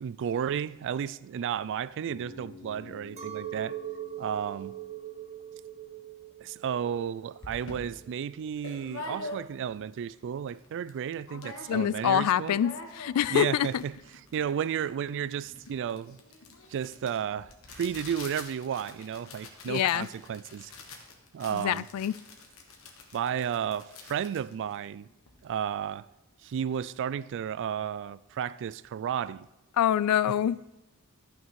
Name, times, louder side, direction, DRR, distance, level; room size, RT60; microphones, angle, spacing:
voice 1, 0.0-3.8 4.2-4.8 6.4-12.6 13.3-14.0 14.3-16.2 16.7-20.7 21.3-21.9 23.1-25.1 25.4-26.1 26.4-29.5, right 8 dB, 55° right, 0.3 m, -33 dB
Bass guitar, 2.1-6.1, left 4 dB, 30° left, 1.2 m, -52 dB
Chink clink, 3.2-8.6, right 11 dB, 30° right, 1.2 m, -42 dB
sound 1, 6.9-7.0 7.4-9.8 10.2-10.3 10.5-11.0 11.3-12.1 12.3-25.4, left 2 dB, 65° left, 1.5 m, -45 dB
voice 2, 11.7-13.8 19.7-20.1 21.5-22.1 29.8-30.6, left 10 dB, 90° left, 0.3 m, -26 dB
13.0 x 6.0 x 4.7 m
head